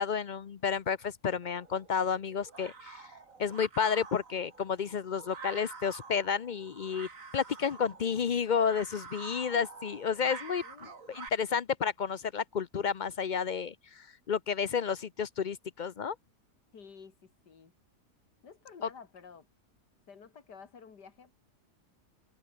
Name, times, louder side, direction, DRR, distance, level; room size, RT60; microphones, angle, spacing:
voice 1, 0.0-3.1 3.4-7.1 7.3-10.6 11.1-16.1 18.8-18.9, left 6 dB, 65° left, 0.4 m, -31 dB
sound 1, 1.4-11.3, right 4 dB, 50° right, 2.7 m, -48 dB
voice 2, 10.6-11.0 16.7-17.7 18.4-19.5 20.1-21.4, left 6 dB, 80° left, 2.9 m, -52 dB
omnidirectional pair, 1.8 m